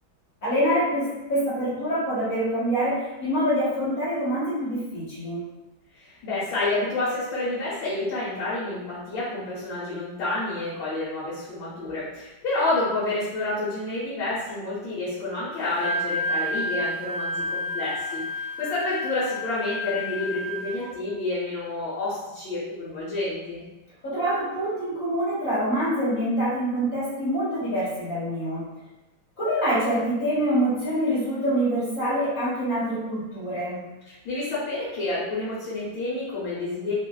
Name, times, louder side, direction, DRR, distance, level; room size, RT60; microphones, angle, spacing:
voice 1, 0.4-5.4 24.0-28.6 29.4-33.8, equal, 45° left, -10 dB, 1.5 m, -25 dB
voice 2, 5.9-23.6 34.1-36.9, left 2 dB, 70° left, -9 dB, 1.6 m, -29 dB
Wind instrument woodwind instrument, 15.6-20.9, left 1 dB, 70° right, 0.6 m, -30 dB
3.5 x 2.4 x 2.3 m, 1.0 s
omnidirectional pair, 2.3 m